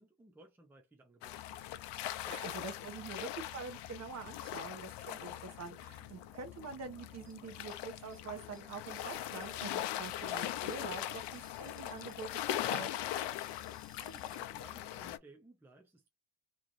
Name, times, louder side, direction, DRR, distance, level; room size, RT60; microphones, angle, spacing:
voice 1, 0.0-1.6 13.7-16.1, right 2 dB, 5° right, 0.5 m, -59 dB
sound 1, 1.2-15.2, left 12 dB, 65° left, 0.6 m, -41 dB
voice 2, 2.2-12.9, right 4 dB, 35° right, 0.9 m, -45 dB
sound 2, 4.1-8.8, right 6 dB, 55° right, 1.4 m, -67 dB
sound 3, 7.3-7.4 7.7-7.8 8.1-8.2 8.5-8.6 9.0-9.1 9.4-14.4, right 1 dB, 70° right, 1.3 m, -65 dB
3.1 x 2.4 x 3.8 m
cardioid pair, 160°, 46 cm